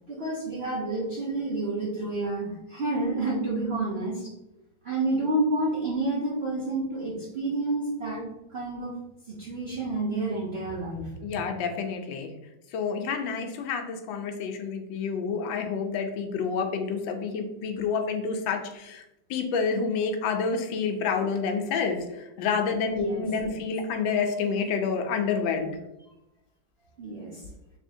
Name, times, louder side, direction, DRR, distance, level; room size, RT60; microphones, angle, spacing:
voice 1, 0.1-4.3 4.8-8.2 8.5-8.9 9.3-11.4 22.8-23.6 27.0-27.4, right 2 dB, 60° right, -6 dB, 0.6 m, -29 dB
voice 2, 11.2-12.3 12.7-19.0 19.3-25.8, left 5 dB, 85° left, 5 dB, 1.3 m, -28 dB
3.6 x 3.4 x 2.6 m, 0.91 s
omnidirectional pair, 2.1 m